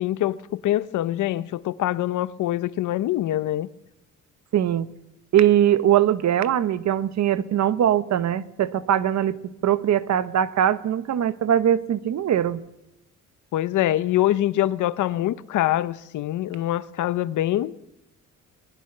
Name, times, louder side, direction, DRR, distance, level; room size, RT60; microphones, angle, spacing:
voice 1, 0.0-3.7 13.5-17.8, left 14 dB, 80° left, 0.9 m, -24 dB
voice 2, 4.5-4.9 5.3-9.4 9.6-12.6, right 10 dB, 65° right, 1.2 m, -21 dB
21.5 x 20.0 x 6.7 m
cardioid pair, 90°, 30 cm